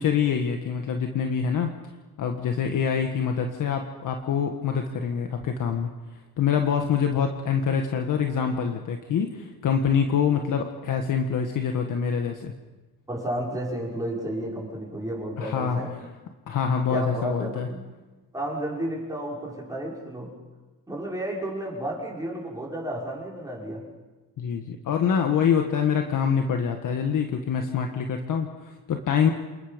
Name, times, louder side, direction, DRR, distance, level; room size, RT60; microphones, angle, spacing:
voice 1, 0.0-1.7 2.2-12.5 15.4-15.8 16.5-17.7 24.4-29.3, left 7 dB, 55° left, 4 dB, 1.7 m, -25 dB
voice 2, 13.1-15.9 16.9-17.9 18.3-20.3 20.9-23.9, right 1 dB, 10° right, -3 dB, 6.1 m, -32 dB
28.0 x 20.0 x 5.3 m, 1.2 s
cardioid pair, 120°, 38 cm